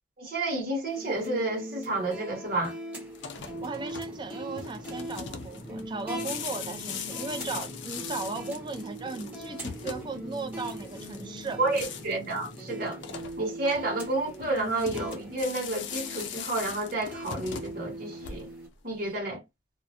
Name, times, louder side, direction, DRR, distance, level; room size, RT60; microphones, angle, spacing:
voice 1, 0.2-2.7 11.6-13.0 13.4-18.5 18.8-19.4, right 2 dB, 55° right, 1.1 m, -30 dB
sound 1, 0.9-18.7, equal, 10° right, 1.0 m, -41 dB
sound 2, 3.1-18.7, left 7 dB, 85° left, 0.5 m, -41 dB
sound 3, 3.4-13.3, equal, 40° left, 0.7 m, -46 dB
voice 2, 3.6-11.6, right 3 dB, 25° right, 0.4 m, -37 dB
2.3 x 2.1 x 2.8 m
head